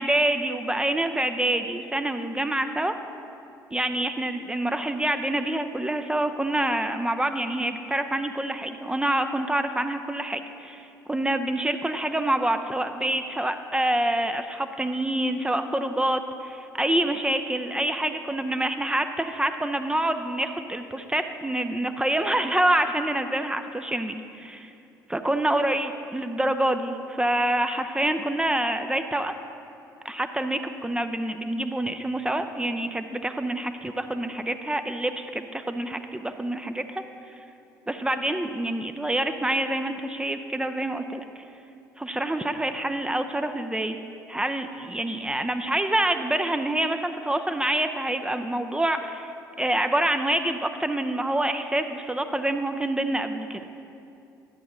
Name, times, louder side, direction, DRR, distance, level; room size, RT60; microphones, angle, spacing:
voice 1, 0.0-2.9 3.7-24.7 25.1-29.3 30.0-37.0 37.9-41.3 42.0-44.0 44.3-49.3 49.6-53.6, right 1 dB, 10° right, 8 dB, 0.4 m, -26 dB
12.5 x 7.8 x 3.1 m, 2.7 s
figure-of-eight pair, 50°, 9 cm